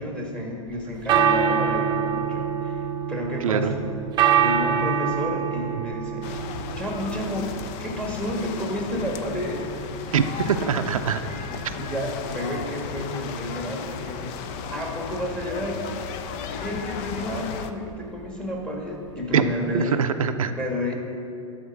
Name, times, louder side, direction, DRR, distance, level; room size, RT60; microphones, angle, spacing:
voice 1, 0.0-3.9 4.4-6.3 6.7-9.7 10.1-10.6 11.3-14.3 14.7-15.9 16.5-20.0 20.5-20.9, left 1 dB, 5° left, 0 dB, 1.7 m, -31 dB
sound 1, 0.7-19.8, right 7 dB, 25° right, 0.8 m, -28 dB
voice 2, 3.4-3.7 10.1-11.2 19.3-19.5 19.7-20.5, right 7 dB, 90° right, 8 dB, 0.6 m, -23 dB
sound 2, 6.2-17.7, left 7 dB, 40° left, 0.6 m, -35 dB
12.0 x 4.4 x 7.0 m, 2.9 s
hypercardioid pair, 125°, 17 cm